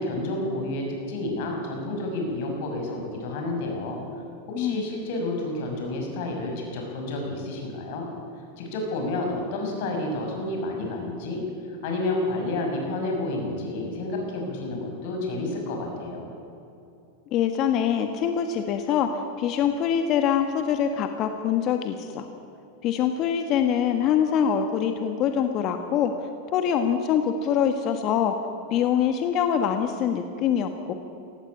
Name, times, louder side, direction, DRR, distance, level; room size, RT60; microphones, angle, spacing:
voice 1, 0.0-4.0 4.5-8.1 8.6-11.4 11.8-16.3, left 2 dB, 65° left, 1 dB, 6.2 m, -30 dB
voice 2, 4.5-4.9 17.3-22.3 22.8-26.1 26.5-28.4 28.7-30.9, left 8 dB, 45° left, 7 dB, 1.5 m, -24 dB
18.0 x 15.5 x 9.8 m, 2.7 s
hypercardioid pair, 110°, 0 cm